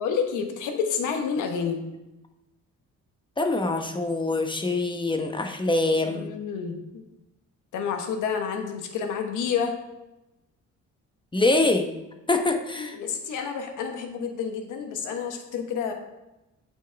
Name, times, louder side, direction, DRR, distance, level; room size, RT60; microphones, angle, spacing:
voice 1, 0.0-1.8 6.0-7.0 7.7-9.7 12.8-15.9, left 6 dB, 90° left, 5 dB, 1.1 m, -29 dB
voice 2, 3.4-6.3 11.3-11.9 12.3-13.0, left 2 dB, 15° left, 5 dB, 0.9 m, -24 dB
8.2 x 6.2 x 3.4 m, 0.98 s
cardioid pair, 90°, 30 cm